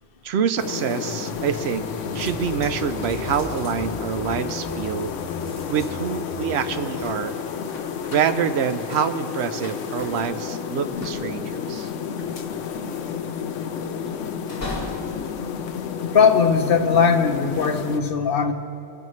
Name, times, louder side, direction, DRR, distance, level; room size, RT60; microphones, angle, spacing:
voice 1, 0.2-1.9 2.1-5.1 5.7-7.4 8.1-11.9 13.3-13.4, right 7 dB, 65° right, 10 dB, 0.9 m, -26 dB
sound 1, 0.6-18.0, left 7 dB, 90° left, 1.0 m, -31 dB
sound 2, 1.0-6.7, equal, 40° right, 1.4 m, -39 dB
sound 3, 2.1-16.6 17.2-17.6, left 1 dB, 35° left, 1.9 m, -42 dB
voice 2, 16.1-18.5, left 6 dB, 55° left, 7 dB, 0.9 m, -19 dB
21.5 x 12.0 x 3.1 m, 2.6 s
omnidirectional pair, 1.2 m